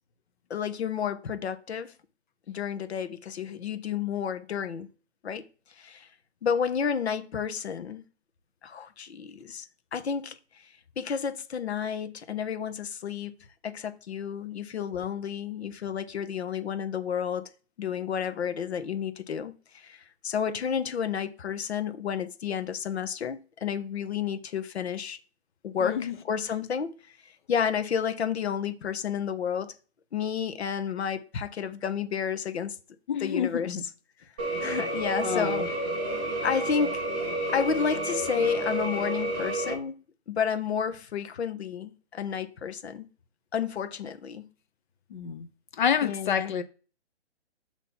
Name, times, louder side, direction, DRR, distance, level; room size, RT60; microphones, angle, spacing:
voice 1, 0.5-1.9 2.5-4.9 5.2-5.5 5.8-6.1 6.4-8.0 8.6-9.7 9.9-10.3 11.0-13.3 13.6-17.5 17.8-25.2 25.6-26.9 27.5-29.7 30.1-32.8 33.2-33.8 34.6-35.7 36.4-37.0 37.5-40.0 40.3-43.0 43.5-44.5 46.0-46.5, left 7 dB, 65° left, 1.1 m, -31 dB
voice 2, 25.8-26.2 33.1-33.8 34.6-34.7 35.2-35.7 45.1-45.5 45.8-46.6, left 7 dB, 45° left, 0.8 m, -28 dB
sound 1, 34.4-39.7, right 1 dB, 10° right, 0.4 m, -30 dB
6.3 x 3.0 x 5.5 m
hypercardioid pair, 155°, 34 cm